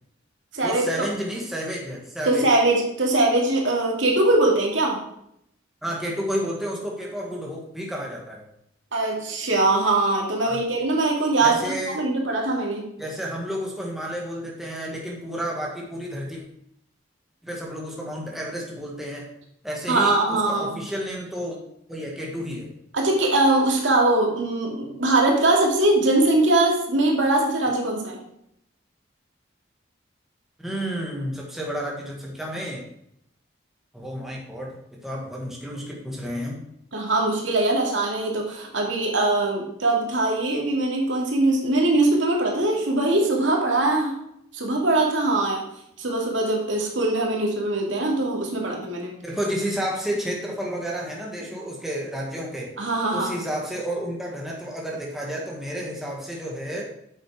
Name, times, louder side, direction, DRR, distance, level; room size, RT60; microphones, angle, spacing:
voice 1, 0.6-2.4 5.8-8.5 10.4-10.6 11.4-12.0 13.0-16.4 17.4-19.3 19.6-21.6 21.9-22.7 30.6-32.8 33.9-34.8 35.0-36.6 49.2-52.7 53.1-56.8, equal, ahead, -3 dB, 1.7 m, -31 dB
voice 2, 2.2-5.0 8.9-12.9 19.9-20.8 22.9-28.2 36.9-44.2 44.5-45.6 46.0-49.1 52.8-53.3, right 2 dB, 80° right, 0 dB, 2.4 m, -22 dB
8.6 x 6.6 x 4.8 m, 0.75 s
head